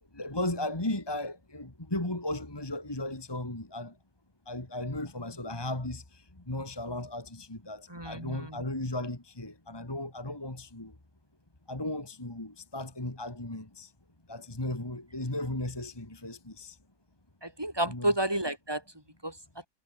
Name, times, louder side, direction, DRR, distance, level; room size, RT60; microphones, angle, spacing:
voice 1, 0.1-3.9 4.5-6.0 6.5-10.9 11.7-13.9 14.3-16.8 17.9-18.1, left 1 dB, 15° left, 2.4 m, -35 dB
voice 2, 7.9-8.6 17.4-18.8 19.2-19.4, right 1 dB, 15° right, 4.0 m, -31 dB
omnidirectional pair, 1.5 m